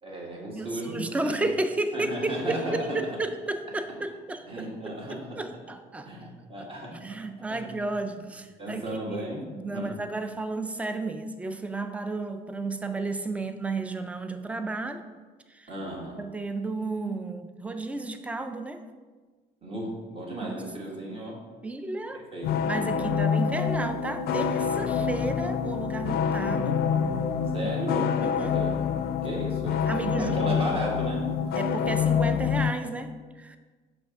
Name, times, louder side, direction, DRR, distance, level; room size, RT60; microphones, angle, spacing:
voice 1, 0.0-1.4 1.9-3.0 4.5-5.4 6.0-7.2 7.5-7.8 8.6-9.4 9.7-10.0 15.7-16.2 19.6-21.4 22.1-22.6 23.0-23.2 27.5-28.1 28.4-28.7 29.2-29.9 30.2-31.3, equal, 35° right, -3 dB, 1.7 m, -35 dB
voice 2, 0.5-6.7 6.9-8.8 9.1-15.0 15.5-15.7 16.2-18.8 20.4-20.6 21.6-22.3 22.7-26.8 27.6-27.7 28.2-28.6 29.9-30.6 31.6-33.6, right 2 dB, 10° right, 8 dB, 0.4 m, -33 dB
sound 1, 22.4-32.7, left 7 dB, 65° left, 0.4 m, -26 dB
5.9 x 3.4 x 5.1 m, 1.4 s
cardioid pair, 110°, 17 cm